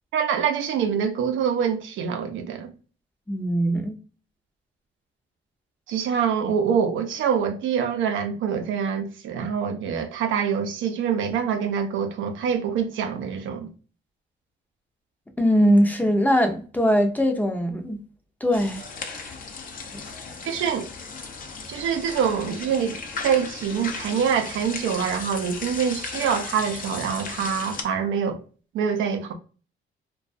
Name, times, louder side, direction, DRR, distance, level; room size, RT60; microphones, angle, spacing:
voice 1, 0.1-2.7 5.9-13.7 20.4-20.9 21.7-23.0 23.2-28.4 28.7-29.3, right 7 dB, 75° right, 0.6 m, -25 dB
voice 2, 3.3-4.0 15.4-18.0 18.4-19.2 19.9-20.0, equal, 10° left, 0.6 m, -21 dB
sound 1, 18.5-27.8, left 4 dB, 45° left, 0.6 m, -36 dB
2.3 x 2.3 x 2.4 m
cardioid pair, 90°, 20 cm